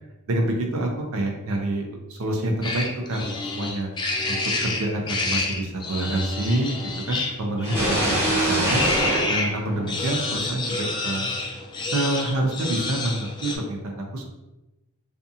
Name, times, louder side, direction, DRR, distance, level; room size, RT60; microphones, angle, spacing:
voice 1, 0.3-6.7 7.1-11.3 11.9-14.3, right 1 dB, 70° right, 1 dB, 0.5 m, -27 dB
sound 1, 2.6-9.5 9.9-13.6, left 2 dB, 20° left, 0.3 m, -28 dB
sound 2, 7.6-10.4, right 1 dB, 15° right, 1.0 m, -25 dB
2.5 x 2.4 x 2.6 m, 0.98 s
head